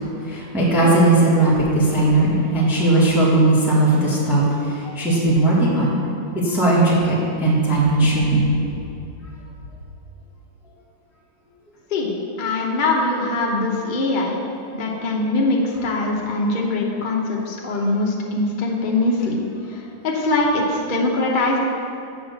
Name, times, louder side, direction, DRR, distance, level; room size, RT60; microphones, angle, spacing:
voice 1, 0.3-4.4 4.9-6.0 6.4-8.5, right 2 dB, ahead, -8 dB, 1.4 m, -17 dB
voice 2, 12.4-14.4 14.7-19.4 19.7-21.6, left 2 dB, 40° left, -2 dB, 0.7 m, -22 dB
7.1 x 4.8 x 6.7 m, 2.6 s
omnidirectional pair, 1.9 m